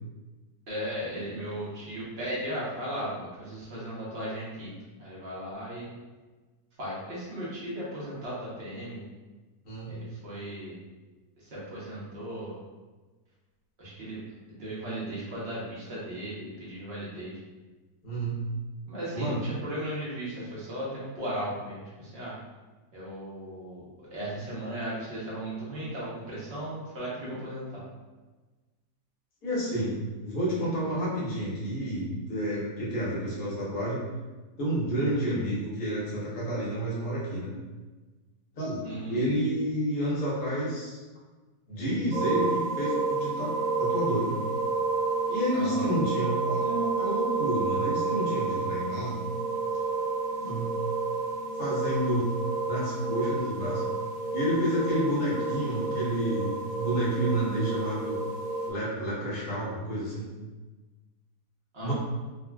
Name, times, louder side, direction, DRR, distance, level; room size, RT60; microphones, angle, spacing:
voice 1, 0.7-4.7 5.0-5.9 6.8-9.0 9.9-10.8 11.4-12.5 13.8-14.2 14.5-17.4 18.9-22.3 22.9-23.8 24.1-27.8 38.8-39.2 45.5-45.8 61.7-61.9, right 1 dB, 45° right, -8 dB, 1.0 m, -36 dB
voice 2, 18.0-18.4 19.1-19.4 29.4-30.0 30.2-34.0 34.6-37.5 38.5-38.8 39.1-41.0 41.7-43.5 43.8-44.4 45.3-49.2 50.4-50.7 51.6-52.3 52.6-53.8 54.3-58.2 58.7-60.3 61.8-61.9, right 1 dB, 60° left, -7 dB, 1.4 m, -29 dB
sound 1, 42.1-58.7, right 3 dB, 80° right, 1.2 m, -30 dB
3.6 x 2.3 x 2.2 m, 1.2 s
omnidirectional pair, 1.8 m